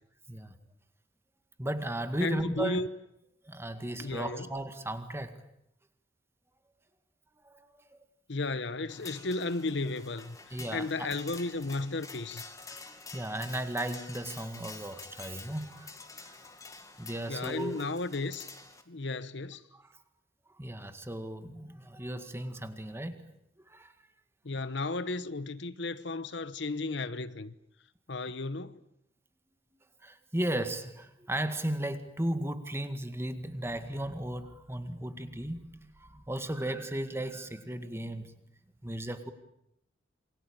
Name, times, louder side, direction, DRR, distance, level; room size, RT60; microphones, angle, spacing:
voice 1, 1.6-2.8 3.4-5.4 7.4-7.8 10.5-11.1 12.8-16.4 17.0-17.8 19.7-20.0 20.5-23.2 23.6-23.9 30.0-38.3 38.8-39.3, right 1 dB, 15° right, 2.0 m, -36 dB
voice 2, 2.2-2.9 4.0-4.5 8.3-12.5 17.3-18.5 18.9-19.6 24.4-27.5 28.1-28.8, left 3 dB, 65° left, 1.0 m, -34 dB
sound 1, 8.9-18.8, left 4 dB, 15° left, 2.2 m, -48 dB
27.5 x 24.0 x 9.0 m
head